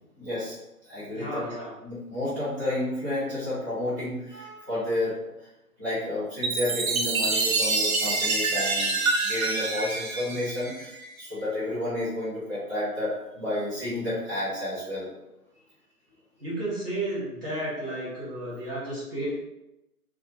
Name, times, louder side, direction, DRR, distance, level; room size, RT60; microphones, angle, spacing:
voice 1, 0.2-0.6 0.8-1.4 1.8-5.5 5.8-15.1, left 1 dB, 10° right, -17 dB, 1.0 m, -31 dB
voice 2, 1.1-1.7 16.4-19.4, right 1 dB, 40° right, -9 dB, 0.9 m, -32 dB
Chime, 6.4-11.1, right 3 dB, 60° right, 0.6 m, -26 dB
2.4 x 2.3 x 3.2 m, 0.93 s
figure-of-eight pair, 160°, 46 cm